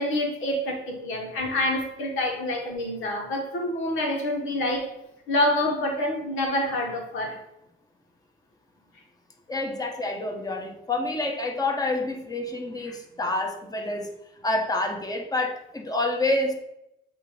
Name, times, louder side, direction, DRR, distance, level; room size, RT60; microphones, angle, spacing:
voice 1, 0.0-4.9 5.3-7.4 12.9-13.0, left 1 dB, 85° left, 1.6 m, -27 dB
voice 2, 9.5-14.1 14.4-16.5, left 2 dB, 20° left, 1.3 m, -28 dB
8.0 x 3.0 x 5.0 m
cardioid pair, 90°, 20 cm